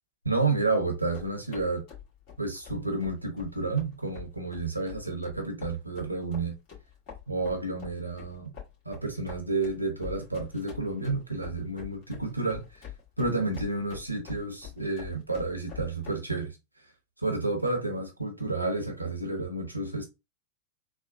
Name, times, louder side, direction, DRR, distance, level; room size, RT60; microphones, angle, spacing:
voice 1, 0.2-1.8 2.4-6.5 7.3-8.5 8.8-12.6 13.2-16.6 17.2-20.1, right 3 dB, 85° right, 0.8 m, -30 dB
sound 1, 1.0-16.1, left 8 dB, 45° left, 1.7 m, -45 dB
3.4 x 2.2 x 2.5 m
figure-of-eight pair, 90°, 0 cm